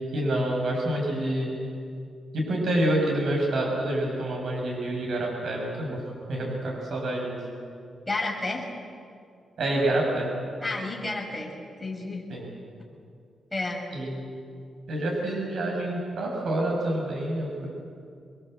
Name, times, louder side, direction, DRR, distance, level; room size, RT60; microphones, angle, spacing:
voice 1, 0.1-1.5 2.3-6.0 6.3-7.4 9.6-10.3 12.3-12.5 13.9-14.2 14.9-17.7, right 1 dB, 60° right, -1 dB, 7.1 m, -27 dB
voice 2, 8.1-8.7 10.6-12.2 13.5-14.0, left 2 dB, 10° left, -2 dB, 5.6 m, -31 dB
28.0 x 22.5 x 8.1 m, 2.3 s
wide cardioid pair, 160°, 0 cm